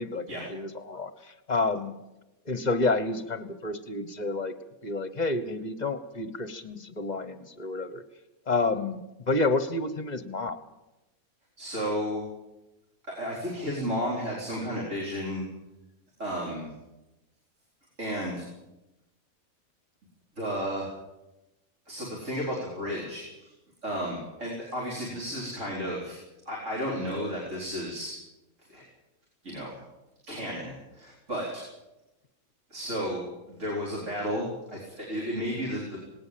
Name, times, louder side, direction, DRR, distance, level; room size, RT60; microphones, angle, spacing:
voice 1, 0.0-1.9 2.5-4.5 4.8-8.0 8.5-10.6, left 3 dB, 30° left, 11 dB, 1.2 m, -29 dB
voice 2, 11.6-12.2 13.1-15.5 16.2-16.7 18.0-18.4 20.3-20.9 21.9-23.5 23.8-26.2 26.5-28.1 28.6-28.8 29.4-29.8 30.2-31.6 32.7-36.0, equal, 55° right, -4 dB, 4.9 m, -33 dB
19.0 x 18.5 x 7.6 m, 0.99 s
omnidirectional pair, 1.5 m